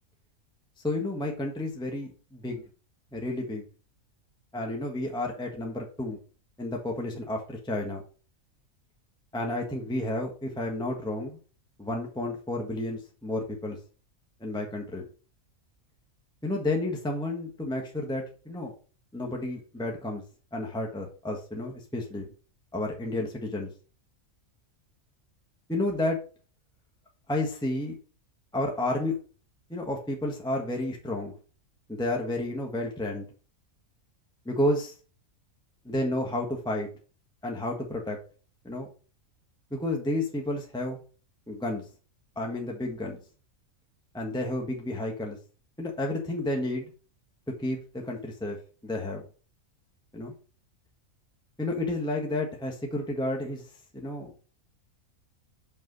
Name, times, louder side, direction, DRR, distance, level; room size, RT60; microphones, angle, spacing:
voice 1, 0.8-2.6 3.1-3.6 4.5-6.2 6.6-8.0 9.3-11.4 11.8-13.8 14.4-15.0 16.4-18.7 19.1-20.2 20.5-22.3 22.7-23.7 25.7-26.2 27.3-27.9 28.5-29.2 29.7-31.3 31.9-33.3 34.4-34.9 35.8-36.9 37.4-38.2 38.6-38.9 39.7-41.0 41.5-41.8 42.4-43.2 44.1-45.4 45.8-46.9 47.6-48.6 48.8-49.2 50.1-50.3 51.6-53.6 53.9-54.3, left 1 dB, 5° left, 0 dB, 1.2 m, -31 dB
6.4 x 5.9 x 3.9 m, 0.37 s
omnidirectional pair, 1.4 m